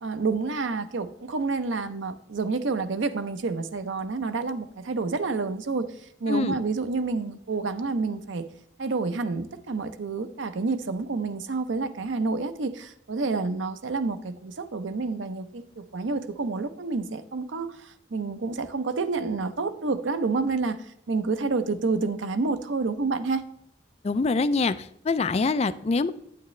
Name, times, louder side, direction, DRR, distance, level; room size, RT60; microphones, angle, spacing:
voice 1, 0.0-8.5 8.8-23.4, right 4 dB, 90° right, 11 dB, 0.6 m, -29 dB
voice 2, 6.3-6.6 24.0-26.1, left 3 dB, 35° left, 13 dB, 0.3 m, -25 dB
8.9 x 8.6 x 3.2 m, 0.72 s
head